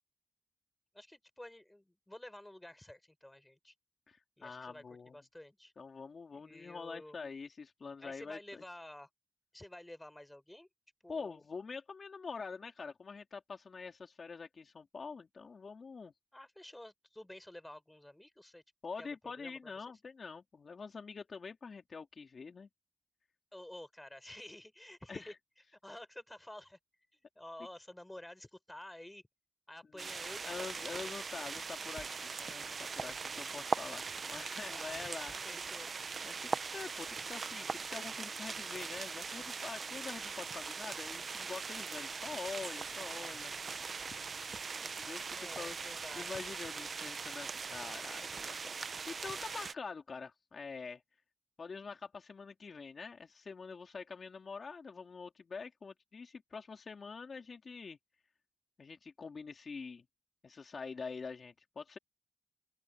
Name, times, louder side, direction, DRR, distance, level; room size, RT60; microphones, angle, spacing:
voice 1, 0.9-3.7 4.4-5.7 6.3-7.2 8.0-9.1 9.5-10.7 11.0-11.4 16.3-18.6 19.0-19.7 23.5-25.3 25.7-26.8 27.4-29.2 29.7-30.9 34.7-35.9 45.3-46.3, left 1 dB, 15° left, 5.4 m, -51 dB
voice 2, 4.1-5.2 5.8-8.6 11.1-16.1 18.8-22.7 25.1-25.3 29.9-30.1 30.4-35.4 36.3-43.5 44.1-44.2 45.0-45.8 46.2-51.0 51.6-58.0 58.8-60.0 60.4-62.0, left 5 dB, 60° left, 2.9 m, -45 dB
sound 1, 30.0-49.7, right 5 dB, 60° right, 0.9 m, -41 dB
open air
supercardioid pair, 45°, 0 cm